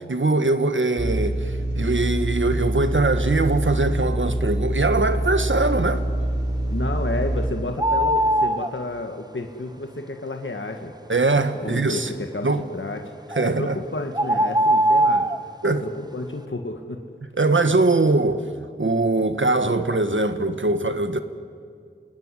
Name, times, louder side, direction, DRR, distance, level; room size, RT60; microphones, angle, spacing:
voice 1, 0.1-6.1 11.1-12.1 12.4-12.6 13.4-13.7 15.6-15.8 17.4-18.5 18.8-21.2, right 2 dB, 80° right, 1.5 m, -22 dB
sound 1, 1.0-7.5, right 1 dB, 60° right, 4.2 m, -25 dB
voice 2, 6.7-10.9 11.5-13.1 13.4-15.3 15.7-17.0, left 2 dB, 85° left, 1.7 m, -31 dB
sound 2, 7.8-8.7 13.3-13.5 14.1-15.4, right 1 dB, 20° right, 1.2 m, -20 dB
27.0 x 19.5 x 9.9 m
wide cardioid pair, 45°, 20 cm